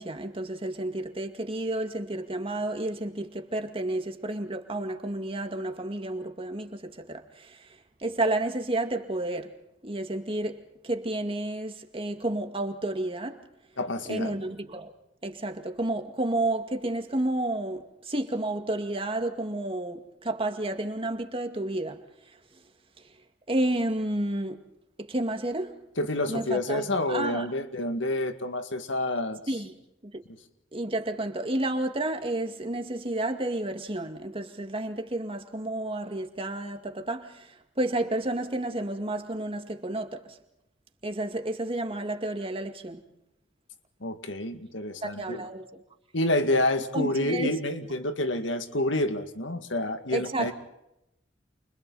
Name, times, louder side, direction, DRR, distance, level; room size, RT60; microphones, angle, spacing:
voice 1, 0.0-9.5 9.8-13.4 14.1-14.9 15.2-22.0 23.5-24.7 25.0-25.8 26.3-27.5 29.5-29.7 30.1-30.2 30.7-40.4 41.0-43.0 45.0-45.8 46.9-47.5 50.1-50.5, right 1 dB, 30° right, 2.1 m, -31 dB
voice 2, 13.8-14.3 26.0-29.4 44.0-45.4 46.1-50.5, left 1 dB, 85° left, 2.2 m, -28 dB
30.0 x 29.0 x 4.2 m
head